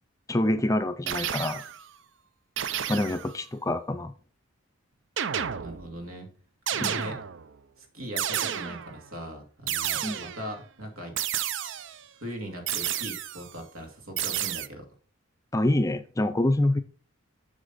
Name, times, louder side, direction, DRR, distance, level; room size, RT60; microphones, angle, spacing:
voice 1, 0.3-1.6 2.9-4.1 6.8-7.0 10.0-10.3 15.5-16.8, left 1 dB, 15° left, 9 dB, 0.5 m, -26 dB
sound 1, 1.1-1.9 2.6-3.4 5.2-6.0 6.7-7.5 8.2-9.0 9.7-10.5 11.2-12.0 12.7-13.5 14.2-14.7, right 9 dB, 55° right, 0.5 m, -31 dB
voice 2, 5.6-6.3 6.7-7.2 7.8-11.1 12.2-14.8, equal, 80° right, 3 dB, 2.5 m, -39 dB
8.1 x 6.5 x 4.1 m, 0.43 s
head